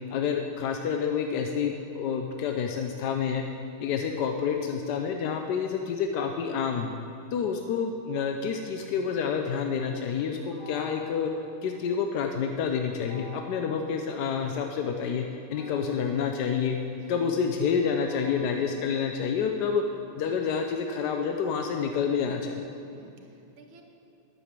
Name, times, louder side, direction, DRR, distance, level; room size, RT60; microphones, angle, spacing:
voice 1, 0.1-3.4 3.8-6.9 7.3-11.3 11.6-15.2 15.5-16.8 17.1-19.8 20.2-22.7, left 6 dB, 65° left, 4 dB, 1.1 m, -28 dB
sound 1, 10.5-12.3 13.0-14.8 15.5-19.8, left 2 dB, 35° left, 1.8 m, -50 dB
voice 2, 22.9-23.8, right 3 dB, 75° right, 3 dB, 2.0 m, -56 dB
10.5 x 7.2 x 8.1 m, 2.7 s
omnidirectional pair, 2.3 m